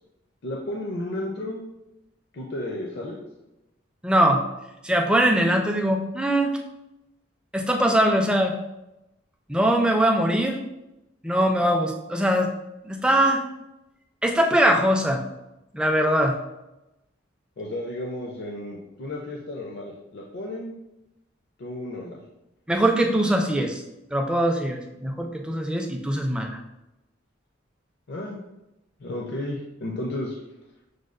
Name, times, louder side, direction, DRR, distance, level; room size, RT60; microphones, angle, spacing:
voice 1, 0.4-1.6 2.3-3.2 17.6-20.7 21.6-22.2 28.1-28.4 29.0-30.4, left 1 dB, 60° left, -1 dB, 0.5 m, -33 dB
voice 2, 4.0-4.4 4.8-6.5 7.5-8.6 9.5-10.6 11.2-12.5 12.8-13.4 14.2-15.2 15.7-16.4 22.7-23.8 24.1-26.5, right 1 dB, 5° right, 2 dB, 0.3 m, -21 dB
6.2 x 2.3 x 2.4 m, 0.93 s
head